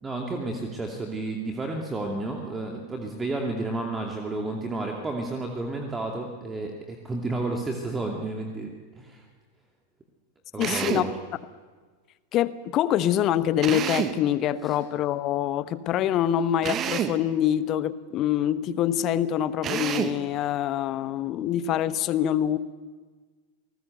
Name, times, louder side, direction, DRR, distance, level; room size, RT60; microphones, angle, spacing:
voice 1, 0.0-9.2 10.5-11.1 14.6-14.8, right 2 dB, 15° right, 1 dB, 2.5 m, -31 dB
voice 2, 10.6-11.1 12.3-22.6, left 11 dB, 35° left, 15 dB, 1.1 m, -25 dB
Drill, 10.6-11.2 13.6-14.3 16.6-17.2 19.6-20.2, right 9 dB, 30° right, 1.4 m, -28 dB
29.0 x 19.5 x 8.1 m, 1.5 s
figure-of-eight pair, 90°, 0 cm